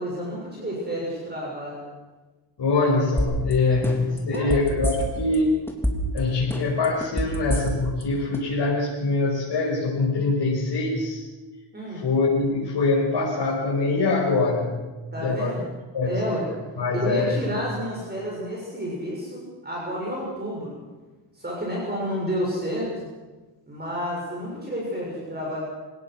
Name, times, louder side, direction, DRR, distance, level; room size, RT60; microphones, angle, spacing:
voice 1, 0.0-1.8 4.3-4.5 11.7-12.1 15.1-15.6 16.0-16.4 16.9-20.8 21.3-23.1 23.7-25.6, equal, 20° right, -4 dB, 6.7 m, -30 dB
voice 2, 2.6-5.6 6.1-11.2 11.9-14.8 15.2-15.6 15.9-16.2 16.8-17.6, left 3 dB, 70° left, -6 dB, 5.8 m, -24 dB
sound 1, 3.2-3.5 3.8-5.4 5.7-6.2 6.5-8.0 8.3-8.4, equal, 5° left, 3.5 m, -26 dB
26.5 x 18.5 x 6.3 m, 1.2 s
wide cardioid pair, 130°, 43 cm